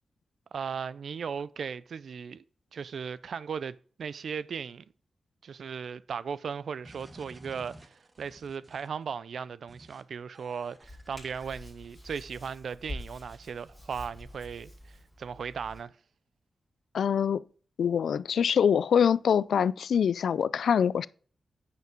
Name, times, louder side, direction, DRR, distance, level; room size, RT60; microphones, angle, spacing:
voice 1, 0.5-2.4 2.7-4.8 5.4-15.9, right 6 dB, 75° right, 0.4 m, -37 dB
sound 1, 6.8-9.0 9.7-10.0 10.3-12.2, right 1 dB, 20° right, 1.2 m, -53 dB
Hands, 10.8-15.8, left 1 dB, 5° right, 5.2 m, -46 dB
voice 2, 16.9-17.4 17.8-21.1, left 7 dB, 85° left, 0.3 m, -24 dB
9.2 x 5.9 x 4.4 m
cardioid pair, 85°, 0 cm